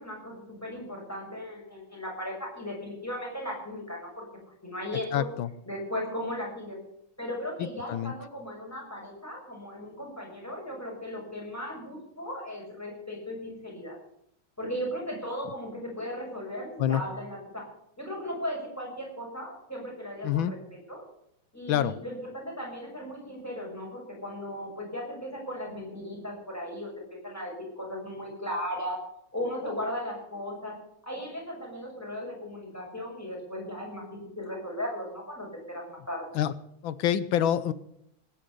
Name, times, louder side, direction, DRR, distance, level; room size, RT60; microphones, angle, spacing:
voice 1, 0.0-4.2 4.6-5.3 5.6-6.8 7.2-14.0 14.6-17.7 18.0-20.6 20.9-21.0 21.5-29.0 29.3-30.8 31.0-34.1 34.3-36.3, equal, 5° left, -2 dB, 6.3 m, -37 dB
voice 2, 5.1-5.5 7.6-8.1 16.8-17.0 20.2-20.5 21.7-21.9 36.3-36.5 36.8-37.7, left 10 dB, 75° left, 15 dB, 1.5 m, -26 dB
19.0 x 10.5 x 6.8 m, 0.75 s
omnidirectional pair, 2.2 m